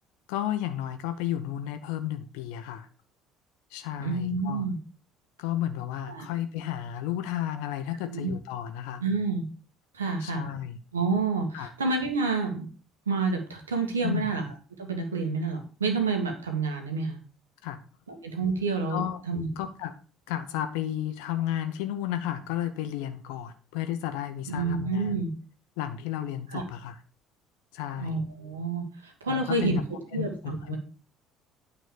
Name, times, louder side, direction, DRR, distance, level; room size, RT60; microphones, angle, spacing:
voice 1, 0.3-2.9 3.7-4.7 5.4-9.0 10.2-10.8 11.5-11.7 14.0-14.3 17.6-17.8 18.9-19.2 19.6-19.9 20.3-25.2 25.8-27.0 27.7-28.2 29.3-29.8 30.1-30.8, left 11 dB, 65° left, 9 dB, 0.8 m, -32 dB
voice 2, 4.0-4.8 6.1-6.3 8.0-8.3 9.0-9.4 9.9-10.4 10.9-12.7 13.0-14.4 14.8-17.2 18.1-19.5 24.5-25.3 26.5-26.6 28.0-30.8, right 4 dB, 80° right, 4 dB, 1.7 m, -29 dB
9.2 x 4.1 x 6.6 m, 0.37 s
figure-of-eight pair, 55°, 0 cm